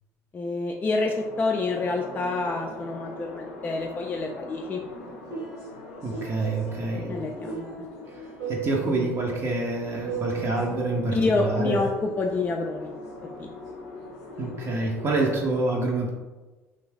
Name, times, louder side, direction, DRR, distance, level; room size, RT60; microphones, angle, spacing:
voice 1, 0.3-4.8 7.1-7.9 11.1-11.9 12.2-12.9 13.2-13.5, left 3 dB, 25° left, 1 dB, 0.3 m, -28 dB
sound 1, 1.0-15.5, left 2 dB, 90° left, 0.5 m, -42 dB
sound 2, 4.9-11.8, right 7 dB, 70° right, 1.2 m, -38 dB
voice 2, 6.0-7.2 8.1-8.2 8.5-11.8 14.4-16.1, right 2 dB, 40° right, -2 dB, 0.6 m, -27 dB
2.6 x 2.3 x 3.2 m, 1.2 s
hypercardioid pair, 70°, 7 cm